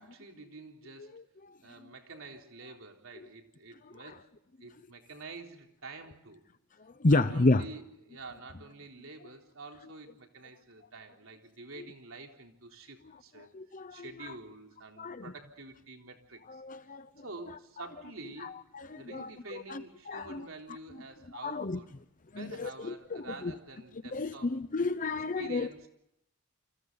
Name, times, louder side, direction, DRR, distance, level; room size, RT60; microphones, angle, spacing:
voice 1, 0.0-1.2 1.6-4.2 4.6-6.4 7.1-13.5 13.9-16.6 17.2-18.6 18.9-21.9 22.4-24.6 25.4-25.9, right 3 dB, 70° right, 2 dB, 3.8 m, -47 dB
voice 2, 1.1-1.6 3.9-4.0 6.8-7.6 11.8-11.9 13.5-14.3 15.0-15.3 16.5-17.1 18.4-20.5 21.4-21.8 22.3-23.5 24.1-25.7, left 2 dB, 40° left, 12 dB, 0.8 m, -31 dB
30.0 x 27.0 x 4.0 m, 0.80 s
head